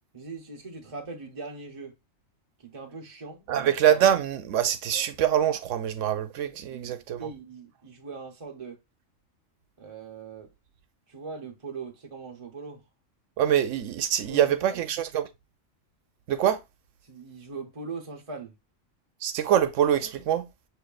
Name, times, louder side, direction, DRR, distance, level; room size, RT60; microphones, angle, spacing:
voice 1, 0.1-1.9 2.6-3.7 6.7-8.8 9.8-10.5 11.1-12.8 14.3-14.8 17.0-18.5, right 4 dB, 30° right, 0.8 m, -41 dB
voice 2, 3.5-7.2 13.4-15.3 16.3-16.6 19.2-20.5, right 10 dB, 75° right, 0.9 m, -24 dB
6.2 x 3.1 x 2.3 m
omnidirectional pair, 1.3 m